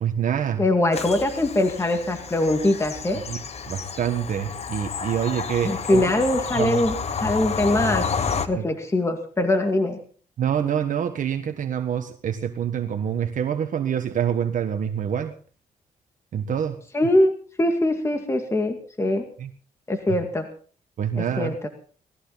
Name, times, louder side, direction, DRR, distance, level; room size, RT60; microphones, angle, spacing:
voice 1, 0.0-0.6 3.3-3.4 3.7-6.0 6.6-6.8 8.6-8.7 10.4-15.3 16.3-16.8 19.4-19.5 21.0-21.5, right 9 dB, 60° right, 6 dB, 1.5 m, -26 dB
voice 2, 0.6-3.2 5.6-6.9 7.2-10.0 16.9-17.3 17.6-19.3 19.9-20.5 21.2-21.7, left 1 dB, 20° left, 4 dB, 2.1 m, -22 dB
Bird vocalization bird call bird song / Train, 0.9-8.5, left 6 dB, 45° left, 1.3 m, -30 dB
19.0 x 14.5 x 4.1 m, 0.43 s
cardioid pair, 115°, 15 cm